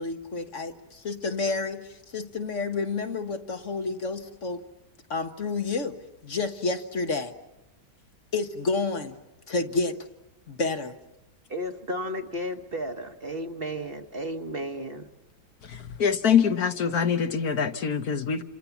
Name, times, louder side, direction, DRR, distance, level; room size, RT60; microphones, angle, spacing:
voice 1, 0.0-1.8 2.1-4.6 5.1-6.0 6.2-7.3 8.3-9.2 9.5-10.0 10.5-10.9, left 3 dB, 50° left, 7 dB, 1.6 m, -29 dB
voice 2, 11.5-15.1, equal, 35° right, 6 dB, 1.5 m, -33 dB
voice 3, 15.6-18.4, left 7 dB, 65° left, 8 dB, 1.6 m, -24 dB
29.5 x 27.0 x 7.1 m, 0.95 s
omnidirectional pair, 1.7 m